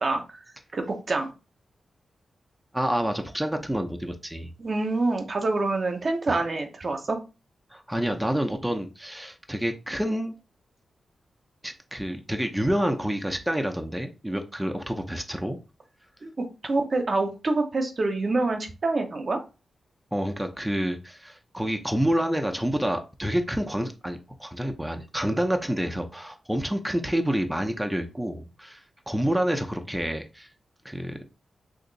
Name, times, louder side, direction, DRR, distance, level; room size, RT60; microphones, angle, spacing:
voice 1, 0.0-0.4 0.7-1.3 4.6-7.2 16.2-16.3 16.6-19.4, right 3 dB, 50° right, 0.8 m, -26 dB
voice 2, 2.7-4.5 6.3-6.4 7.7-10.3 11.6-15.6 20.1-30.5 30.8-31.2, equal, 5° right, 0.6 m, -28 dB
2.9 x 2.5 x 3.9 m
cardioid pair, 55°, 0 cm